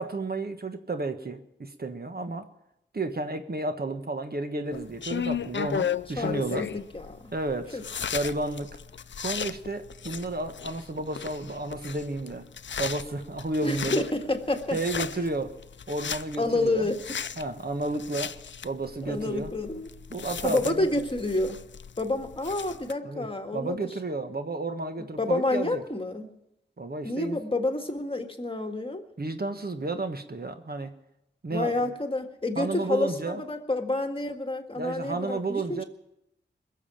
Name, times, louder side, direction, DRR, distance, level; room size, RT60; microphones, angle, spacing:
voice 1, 0.0-2.5 2.9-6.7 7.3-7.8 8.1-8.8 9.2-12.5 12.8-14.0 14.7-15.6 15.9-16.9 17.4-18.3 18.6-19.5 20.1-20.9 23.0-25.8 26.8-27.4 29.2-30.9 31.4-31.9 32.5-33.4 34.8-35.8, right 2 dB, 55° right, 7 dB, 1.4 m, -32 dB
sound 1, 4.7-22.9, left 7 dB, 80° left, 0.5 m, -36 dB
voice 2, 6.2-7.2 7.7-7.8 13.6-15.0 16.4-17.2 19.0-19.9 20.4-21.6 22.0-23.8 25.2-26.3 27.0-29.0 31.5-35.8, left 2 dB, 30° left, 5 dB, 1.8 m, -29 dB
21.0 x 7.4 x 8.8 m, 0.83 s
wide cardioid pair, 55°, 19 cm